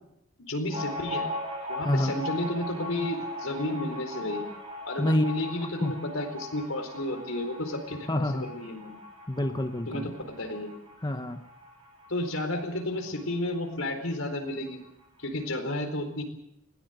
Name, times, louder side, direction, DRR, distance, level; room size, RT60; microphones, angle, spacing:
voice 1, 0.5-1.3 1.7-4.4 4.9-9.0 9.9-10.7 12.1-14.8 15.2-16.2, left 1 dB, 85° left, 6 dB, 4.3 m, -32 dB
sound 1, 0.7-13.8 14.1-14.2 14.5-15.3, left 1 dB, 25° right, 7.6 m, -39 dB
voice 2, 1.8-2.2 5.0-5.3 5.8-5.9 8.1-8.5 9.3-10.1 11.0-11.4, left 1 dB, 20° left, 7 dB, 1.1 m, -27 dB
21.0 x 18.0 x 8.0 m, 0.79 s
head